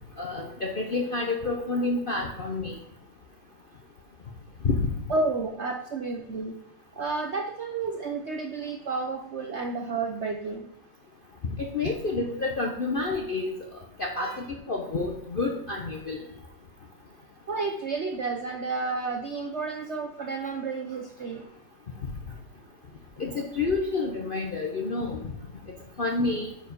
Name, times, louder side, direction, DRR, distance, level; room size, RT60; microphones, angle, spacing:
voice 1, 0.2-2.7 4.6-4.9 11.6-13.5 14.0-16.2 23.2-25.2 26.0-26.5, left 3 dB, 50° left, 1 dB, 0.6 m, -29 dB
voice 2, 5.1-6.6 6.9-10.7 11.8-11.9 14.2-14.4 17.5-21.5, right 3 dB, 65° right, 4 dB, 0.6 m, -31 dB
9.1 x 4.9 x 5.2 m, 0.82 s
omnidirectional pair, 2.1 m